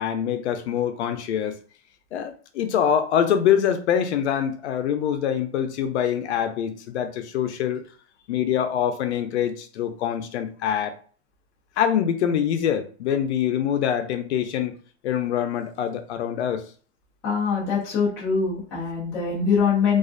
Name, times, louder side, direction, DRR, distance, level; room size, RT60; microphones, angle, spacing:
voice 1, 0.0-1.5 2.1-7.8 8.3-10.9 11.8-14.8 15.0-16.6, left 9 dB, 75° left, 8 dB, 0.5 m, -24 dB
voice 2, 17.2-20.0, left 5 dB, 10° left, -9 dB, 0.3 m, -23 dB
2.4 x 2.1 x 2.4 m, 0.41 s
supercardioid pair, 155°, 34 cm